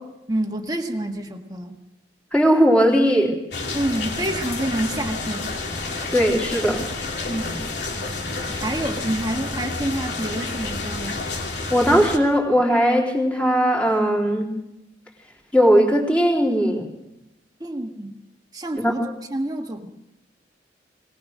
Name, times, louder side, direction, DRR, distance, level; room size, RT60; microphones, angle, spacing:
voice 1, 0.3-1.8 3.7-5.5 7.3-7.6 8.5-11.2 17.6-18.1 18.5-19.0 19.3-19.9, right 1 dB, 20° right, 3 dB, 1.6 m, -28 dB
voice 2, 2.3-3.4 6.1-6.8 11.7-14.5 15.5-16.9 18.8-18.9, equal, 5° left, -1 dB, 3.5 m, -18 dB
sound 1, 3.5-12.2, left 3 dB, 60° left, 2.9 m, -30 dB
21.5 x 19.5 x 6.5 m, 0.91 s
head